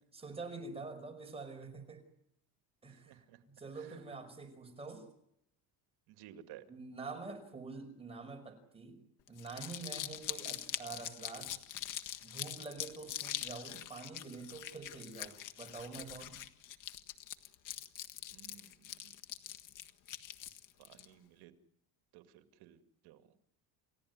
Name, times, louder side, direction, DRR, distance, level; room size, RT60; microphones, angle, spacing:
voice 1, 0.1-2.0 2.8-3.2 3.6-5.0 6.7-9.0 9.3-11.5 12.2-16.3, right 4 dB, 15° right, 4 dB, 5.4 m, -46 dB
voice 2, 2.9-3.4 3.7-4.0 6.1-6.6 18.3-19.1 20.8-21.5 22.1-23.3, right 11 dB, 75° right, 9 dB, 2.2 m, -57 dB
Crumpling crinkling, 9.3-21.1, left 12 dB, 50° left, 1.7 m, -43 dB
29.5 x 16.5 x 9.5 m, 0.76 s
cardioid pair, 160°, 39 cm